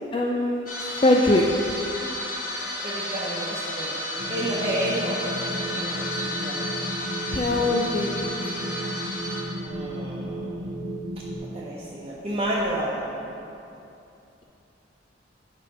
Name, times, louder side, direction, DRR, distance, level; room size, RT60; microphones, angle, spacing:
voice 1, 0.1-0.7 1.0-1.4 7.3-8.2, left 2 dB, 30° left, -1 dB, 0.4 m, -21 dB
sound 1, 0.7-9.4, left 1 dB, 50° left, 1.0 m, -32 dB
voice 2, 2.8-4.0 4.3-5.2 5.7-6.6 7.4-7.7 9.5-10.6 11.5-13.0, right 1 dB, 35° right, -7 dB, 0.9 m, -30 dB
sound 2, 4.2-11.4, right 1 dB, 80° right, 0.9 m, -34 dB
9.6 x 3.3 x 6.0 m, 2.8 s
head